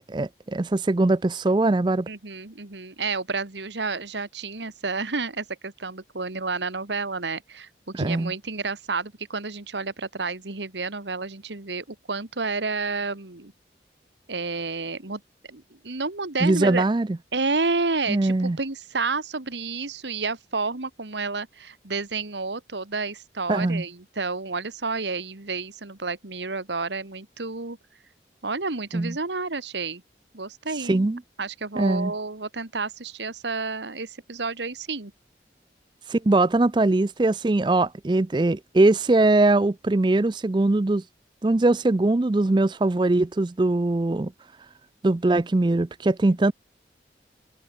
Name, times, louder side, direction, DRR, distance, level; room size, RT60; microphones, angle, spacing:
voice 1, 0.1-2.1 7.9-8.3 16.4-17.1 18.1-18.6 23.5-23.8 28.9-29.1 30.9-31.2 31.8-32.1 36.1-41.0 41.4-44.3 45.0-46.5, right 2 dB, 25° right, 0.4 m, -21 dB
voice 2, 2.1-13.5 14.3-15.2 15.5-16.8 17.3-27.8 28.4-30.0 30.3-31.1 31.4-35.1 46.3-46.5, right 4 dB, 90° right, 1.9 m, -30 dB
head